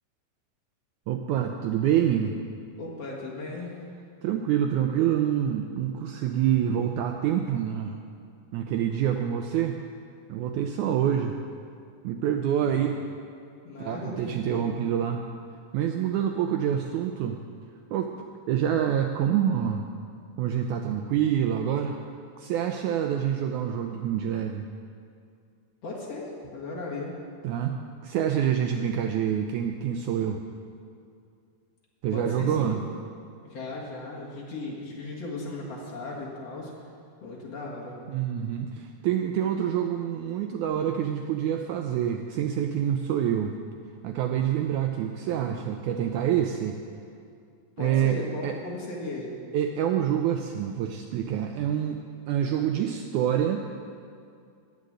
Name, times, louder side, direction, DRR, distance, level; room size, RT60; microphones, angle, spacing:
voice 1, 1.1-2.4 4.2-8.0 8.5-9.8 10.3-11.4 12.0-13.0 13.8-15.2 15.7-17.4 17.9-18.1 18.5-19.8 20.4-22.0 22.4-24.7 27.4-27.8 28.0-30.4 32.0-32.8 38.1-43.6 44.0-46.8 47.8-48.6 49.5-52.0 52.3-53.6, right 9 dB, 85° right, 4 dB, 1.7 m, -26 dB
voice 2, 2.8-3.7 12.6-13.0 13.6-14.8 25.8-27.1 32.1-32.7 33.4-36.7 37.2-38.0 47.8-49.4, left 2 dB, 50° left, -4 dB, 2.5 m, -36 dB
15.5 x 5.3 x 9.8 m, 2.4 s
omnidirectional pair, 4.1 m